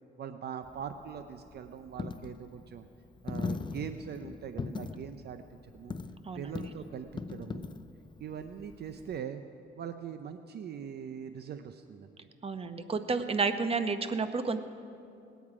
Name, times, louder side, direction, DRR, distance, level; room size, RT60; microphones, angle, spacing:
voice 1, 0.2-2.9 3.2-6.0 6.3-7.7 8.2-9.4 9.8-12.3, right 8 dB, 55° right, 9 dB, 0.6 m, -42 dB
Coin (dropping), 0.6-9.2, left 4 dB, 25° left, 0.4 m, -41 dB
voice 2, 12.4-14.6, right 4 dB, 30° right, 9 dB, 0.8 m, -30 dB
19.0 x 9.3 x 4.9 m, 2.6 s
cardioid pair, 90°, 20 cm